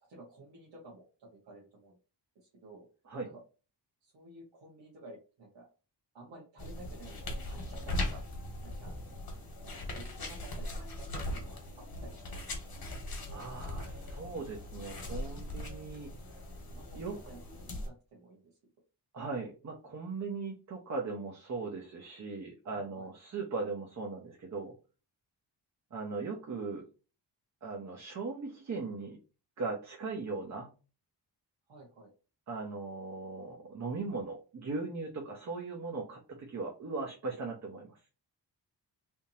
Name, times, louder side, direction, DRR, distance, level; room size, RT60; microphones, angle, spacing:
voice 1, 0.1-2.0 2.6-2.9 3.2-3.4 4.0-5.7 6.1-8.2 8.6-9.0 9.9-11.6 12.0-12.7 16.7-17.4 17.8-18.5 22.7-23.1 31.7-32.1, right 2 dB, 80° right, -4 dB, 1.4 m, -52 dB
sound 1, 6.6-17.9, left 1 dB, 55° left, 1.4 m, -40 dB
voice 2, 13.3-16.1 16.9-17.2 19.1-24.7 25.9-26.8 27.6-29.2 29.6-30.7 32.5-37.9, right 4 dB, 40° right, 0 dB, 0.7 m, -38 dB
3.5 x 2.7 x 2.8 m, 0.33 s
wide cardioid pair, 160°, 43 cm